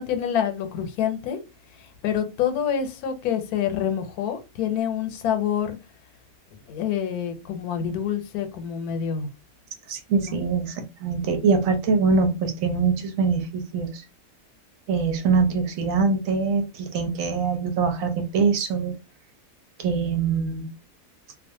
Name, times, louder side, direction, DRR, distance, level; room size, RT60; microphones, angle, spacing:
voice 1, 0.0-1.4 1.8-5.8 6.7-9.3 10.2-10.4, left 8 dB, 90° left, 1.1 m, -27 dB
voice 2, 9.9-14.0 14.9-18.9 19.8-20.7, right 5 dB, 70° right, 1.0 m, -23 dB
2.4 x 2.3 x 2.6 m
omnidirectional pair, 1.6 m